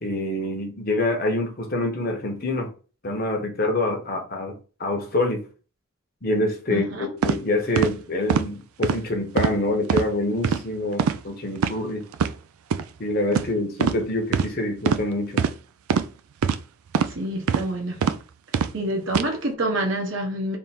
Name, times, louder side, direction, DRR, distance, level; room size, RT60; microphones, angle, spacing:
voice 1, 0.0-2.7 3.0-5.4 6.2-12.1 13.0-15.4, left 1 dB, 45° left, 0.9 m, -26 dB
voice 2, 6.7-7.1 17.1-18.1 18.7-20.6, right 1 dB, 60° right, 1.0 m, -27 dB
sound 1, 7.2-7.4 7.8-7.9 8.3-8.5 8.8-9.0 9.4-9.6 9.9-10.0 10.4-10.6 11.0-11.2 11.6-11.7 12.1-12.3 12.7-12.8 13.3-13.5 13.8-14.0 14.3-14.5 14.9-15.0 15.4-15.5 15.9-16.0 16.4-16.6 16.9-17.1 17.5-17.7 18.0-18.2 18.5-18.7 19.1-19.2, right 6 dB, 90° right, 0.4 m, -22 dB
3.5 x 2.5 x 4.3 m
head